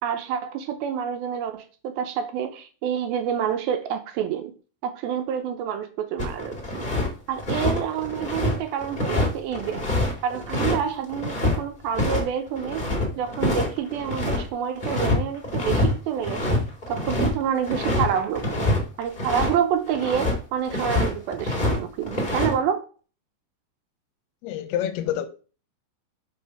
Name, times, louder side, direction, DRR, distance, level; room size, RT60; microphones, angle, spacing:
voice 1, 0.0-4.5 4.8-6.9 7.3-9.9 10.2-18.7 19.0-22.8, right 8 dB, 80° right, 2.4 m, -28 dB
sound 1, 6.2-7.1 7.4-11.6 11.9-12.2 12.5-14.4 14.8-15.2 15.4-19.6 19.9-20.3 20.7-21.8 22.0-22.5, left 2 dB, 40° left, 0.6 m, -25 dB
voice 2, 24.4-25.3, left 11 dB, 80° left, 2.4 m, -27 dB
5.4 x 5.2 x 5.9 m
omnidirectional pair, 4.8 m